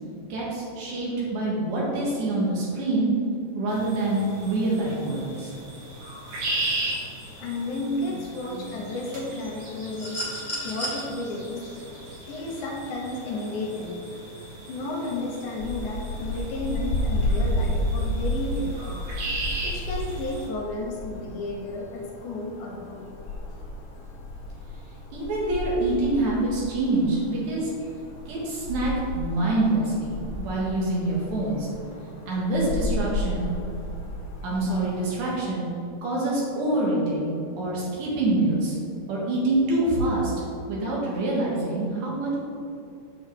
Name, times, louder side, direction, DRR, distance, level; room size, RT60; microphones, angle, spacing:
voice 1, 0.3-3.1 3.5-5.5 25.1-27.7 28.3-31.7 32.3-33.5 34.4-35.7 36.0-37.3 37.6-38.7 39.1-40.3 40.7-42.4, right 2 dB, 80° right, -5 dB, 2.9 m, -26 dB
sound 1, 3.7-20.5, right 1 dB, 65° right, 2.6 m, -37 dB
voice 2, 7.4-11.7 12.3-14.0 14.7-19.0 19.6-23.1, left 2 dB, 85° left, -2 dB, 2.4 m, -32 dB
sound 2, 10.0-11.0 12.5-12.6, equal, 25° left, 0.9 m, -32 dB
sound 3, 15.6-35.4, left 1 dB, 70° left, 3.0 m, -32 dB
7.8 x 6.5 x 3.3 m, 2.6 s
omnidirectional pair, 3.4 m